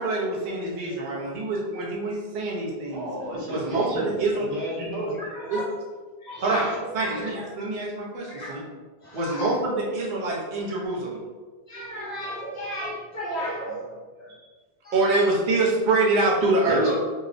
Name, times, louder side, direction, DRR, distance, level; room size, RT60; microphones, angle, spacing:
voice 1, 0.0-3.1 3.5-4.5 5.5-5.6 6.4-6.6 6.9-8.6 9.1-11.2 14.4-14.5 14.9-16.8, right 2 dB, 55° right, -3 dB, 0.7 m, -25 dB
voice 2, 2.9-5.2 16.7-17.0, equal, 80° right, -5 dB, 1.0 m, -31 dB
voice 3, 3.5-3.9 4.3-4.4 5.0-5.7 6.2-7.3 8.2-8.5 9.0-9.5 11.7-14.3 14.8-15.4 16.8-17.0, equal, 45° left, -7 dB, 0.8 m, -35 dB
2.8 x 2.0 x 2.5 m, 1.4 s
omnidirectional pair, 1.0 m